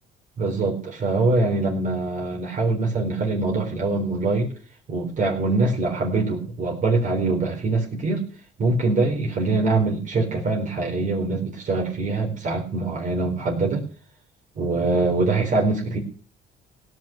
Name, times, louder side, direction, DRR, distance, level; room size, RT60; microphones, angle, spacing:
voice 1, 0.4-4.5 4.9-8.2 8.6-13.8 14.6-16.0, right 3 dB, 50° right, -1 dB, 4.0 m, -23 dB
16.5 x 6.1 x 8.6 m, 0.42 s
cardioid pair, 110°, 17 cm